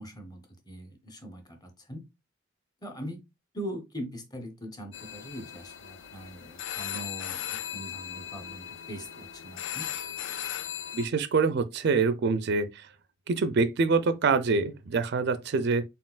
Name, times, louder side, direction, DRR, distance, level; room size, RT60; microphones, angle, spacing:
voice 1, 0.0-2.0 2.8-3.2 3.5-9.9, equal, 20° left, 0.8 m, -41 dB
sound 1, 4.9-11.1, left 9 dB, 60° left, 0.4 m, -38 dB
voice 2, 10.9-12.9 13.3-15.8, right 4 dB, 55° right, 0.4 m, -25 dB
4.3 x 3.8 x 2.3 m
head